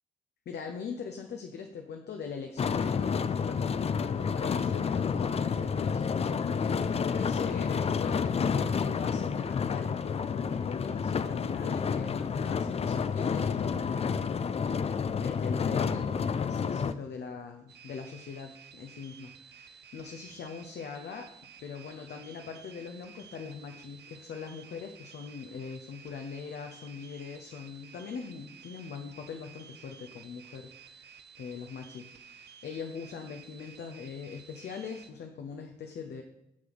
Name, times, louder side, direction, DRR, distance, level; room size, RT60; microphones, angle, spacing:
voice 1, 0.5-21.3 21.6-36.2, left 6 dB, 65° left, 4 dB, 0.7 m, -41 dB
sound 1, 2.6-16.9, left 6 dB, 35° left, 0.4 m, -30 dB
sound 2, 17.7-35.1, right 7 dB, 65° right, 0.6 m, -53 dB
6.1 x 5.9 x 4.0 m, 0.86 s
cardioid pair, 75°, 18 cm